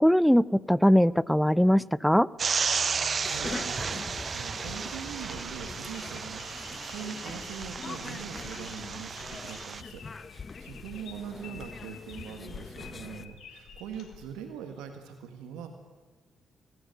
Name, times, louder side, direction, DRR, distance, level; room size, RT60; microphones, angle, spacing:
voice 1, 0.0-2.3, equal, ahead, 21 dB, 0.6 m, -21 dB
sound 1, 2.4-9.8, right 5 dB, 50° right, 0.7 m, -33 dB
voice 2, 2.9-15.7, right 8 dB, 80° right, 6 dB, 1.7 m, -42 dB
sound 2, 3.2-13.3, left 4 dB, 40° left, 1.1 m, -43 dB
sound 3, 4.5-14.8, left 6 dB, 70° left, 3.5 m, -50 dB
20.0 x 16.5 x 9.3 m, 1.3 s
hypercardioid pair, 45°, 0 cm